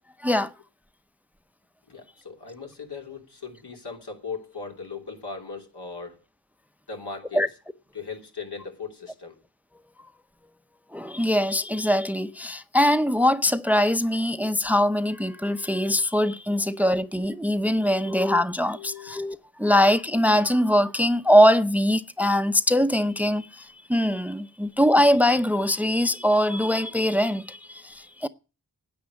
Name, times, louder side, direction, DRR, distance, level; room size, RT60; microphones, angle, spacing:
voice 1, 1.9-6.2 6.9-7.4 7.9-9.4 17.8-18.1 18.7-19.3, left 5 dB, 80° left, 3.0 m, -38 dB
voice 2, 10.9-28.3, equal, 5° right, 0.7 m, -22 dB
10.5 x 8.6 x 9.6 m
wide cardioid pair, 45°, 39 cm